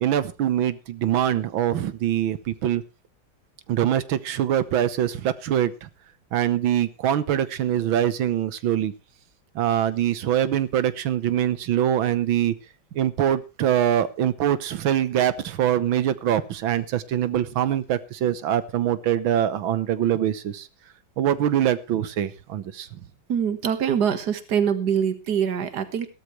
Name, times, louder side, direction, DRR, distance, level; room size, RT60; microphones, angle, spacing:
voice 1, 0.0-2.8 3.7-5.9 6.3-8.9 9.6-12.6 13.0-20.7 21.2-23.1, right 10 dB, 85° right, 15 dB, 1.8 m, -23 dB
voice 2, 23.3-26.1, right 8 dB, 55° right, 11 dB, 2.0 m, -24 dB
16.5 x 13.0 x 3.2 m, 0.28 s
omnidirectional pair, 2.1 m